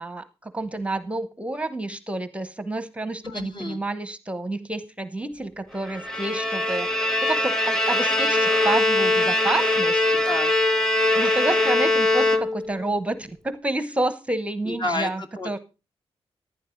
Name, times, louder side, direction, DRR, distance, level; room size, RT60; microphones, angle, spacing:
voice 1, 0.0-6.9 7.2-10.0 11.1-15.6, right 2 dB, 10° right, 13 dB, 0.9 m, -29 dB
voice 2, 3.2-3.8 10.1-10.5 14.6-15.1 15.4-15.6, left 2 dB, 45° left, 5 dB, 2.3 m, -30 dB
Bowed string instrument, 5.9-12.9, left 2 dB, 5° left, 1.2 m, -22 dB
14.5 x 11.5 x 3.8 m, 0.30 s
wide cardioid pair, 120°, 11 cm